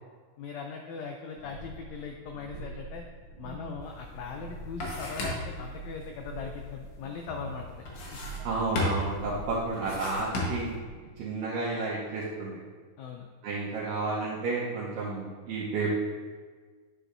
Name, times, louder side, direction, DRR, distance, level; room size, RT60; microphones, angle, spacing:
voice 1, 0.4-3.1 3.4-7.8 8.1-8.2 13.0-13.3, left 5 dB, 85° left, 3 dB, 1.6 m, -40 dB
sound 1, 1.4-11.0, right 2 dB, 65° right, 2.8 m, -44 dB
sound 2, 3.9-4.0 4.4-5.6 7.8-8.5 8.8-9.2 9.7-10.8, left 2 dB, 55° left, 1.8 m, -33 dB
voice 2, 8.4-10.8 11.2-12.6 13.4-15.9, right 3 dB, 85° right, -7 dB, 2.6 m, -31 dB
8.8 x 6.9 x 2.6 m, 1.5 s
omnidirectional pair, 3.7 m